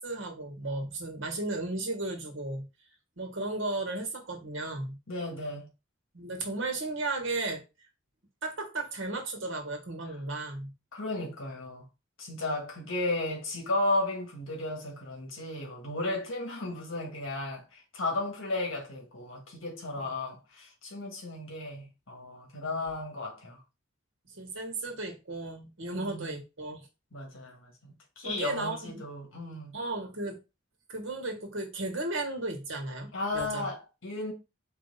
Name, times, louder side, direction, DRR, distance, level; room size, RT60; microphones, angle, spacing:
voice 1, 0.0-2.7 3.2-5.0 6.1-7.6 8.4-10.7 22.6-22.8 24.3-26.8 28.2-29.0 29.7-30.4 30.9-33.6, right 2 dB, 75° right, 1.5 m, -35 dB
voice 2, 5.1-5.7 10.9-11.9 12.2-23.6 25.9-26.4 27.1-29.8 33.1-34.3, left 2 dB, 80° left, 1.8 m, -34 dB
4.6 x 2.8 x 4.1 m
head